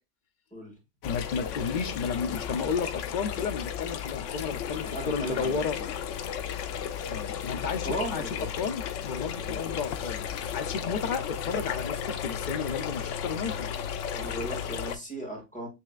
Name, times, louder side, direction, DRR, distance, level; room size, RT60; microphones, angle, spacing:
sound 1, 1.0-15.0, left 8 dB, 80° left, 0.9 m, -34 dB
voice 1, 1.0-5.8 7.1-10.3 10.5-13.7, left 5 dB, 55° left, 0.5 m, -32 dB
voice 2, 4.9-5.6 7.6-8.5 9.4-9.6 14.1-15.7, right 1 dB, 5° left, 1.7 m, -36 dB
7.3 x 3.1 x 2.3 m
omnidirectional pair, 1.3 m